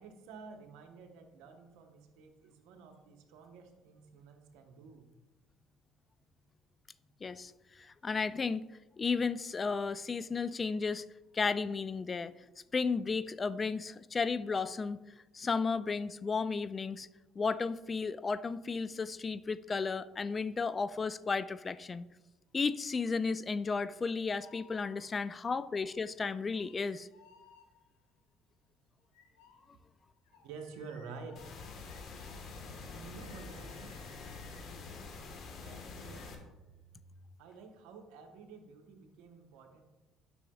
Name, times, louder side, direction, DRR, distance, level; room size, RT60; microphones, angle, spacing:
voice 1, 0.0-5.1 30.4-31.6 32.9-34.0 35.6-36.3 37.4-39.8, right 4 dB, 75° right, 4 dB, 1.0 m, -50 dB
voice 2, 7.2-8.6 9.0-11.0 11.3-12.3 12.7-15.0 15.3-17.1 17.4-22.0 22.5-27.1, left 4 dB, 30° left, 15 dB, 0.3 m, -33 dB
sound 1, 24.4-25.4 26.2-28.1 29.1-37.4, left 3 dB, 85° left, 0.9 m, -61 dB
sound 2, 31.4-36.4, left 4 dB, 55° left, 1.3 m, -46 dB
9.6 x 6.2 x 2.3 m, 1.1 s
hypercardioid pair, 70°, 0 cm